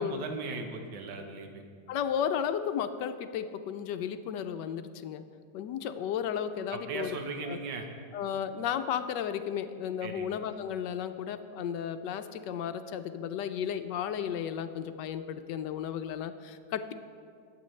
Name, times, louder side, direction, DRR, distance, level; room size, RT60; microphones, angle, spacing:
voice 1, 0.0-1.6 6.7-7.9 10.0-10.3, right 4 dB, 80° right, 4 dB, 1.7 m, -37 dB
voice 2, 1.9-5.2 5.5-7.2 7.4-7.6 8.1-16.9, left 8 dB, 75° left, 9 dB, 1.1 m, -34 dB
21.0 x 8.3 x 3.2 m, 2.3 s
omnidirectional pair, 2.0 m